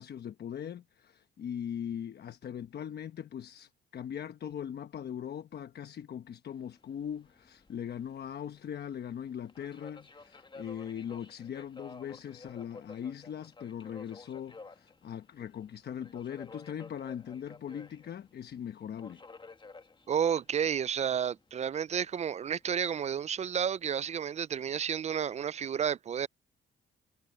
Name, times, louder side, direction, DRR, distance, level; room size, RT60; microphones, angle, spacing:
voice 1, 0.0-19.2, left 9 dB, 55° left, 1.1 m, -40 dB
Subway metro underground, 6.5-24.9, left 3 dB, 25° left, 1.7 m, -54 dB
voice 2, 20.1-26.3, right 8 dB, 35° right, 0.4 m, -31 dB
cardioid pair, 90°, 20 cm